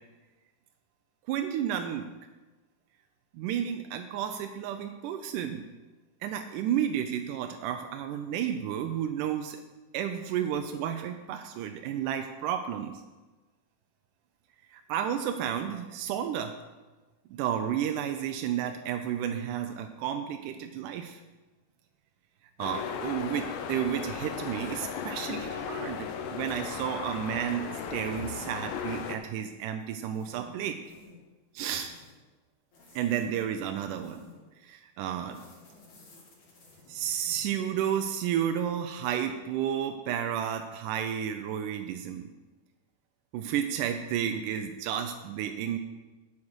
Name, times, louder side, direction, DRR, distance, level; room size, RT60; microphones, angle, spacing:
voice 1, 1.3-2.1 3.3-5.7 6.2-9.6 9.9-12.9 14.7-16.5 17.3-21.2 22.6-30.8 31.5-31.9 33.0-34.3 34.6-35.4 36.9-42.3 43.3-45.8, right 9 dB, 80° right, 6 dB, 1.9 m, -32 dB
sound 1, 22.6-29.2, left 7 dB, 75° left, 2.5 m, -36 dB
sound 2, 29.8-30.5 30.8-31.2 31.7-32.1 32.7-33.3 33.8-34.5 35.3-37.5, left 3 dB, 55° left, 3.9 m, -55 dB
9.6 x 7.2 x 6.3 m, 1.2 s
omnidirectional pair, 4.2 m